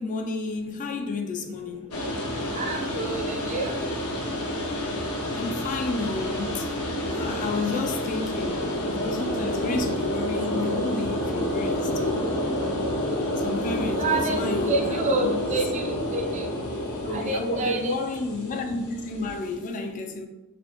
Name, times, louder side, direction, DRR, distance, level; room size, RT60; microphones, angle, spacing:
voice 1, 0.0-1.9 5.4-6.7 7.1-12.2 13.4-15.4 16.6-20.3, left 3 dB, 35° left, 0.3 m, -31 dB
sound 1, 1.9-19.6, equal, 80° left, 0.7 m, -29 dB
voice 2, 2.6-3.7 14.0-14.4 14.7-16.5 17.1-17.9, right 2 dB, 35° right, 0.4 m, -28 dB
4.2 x 2.8 x 2.8 m
head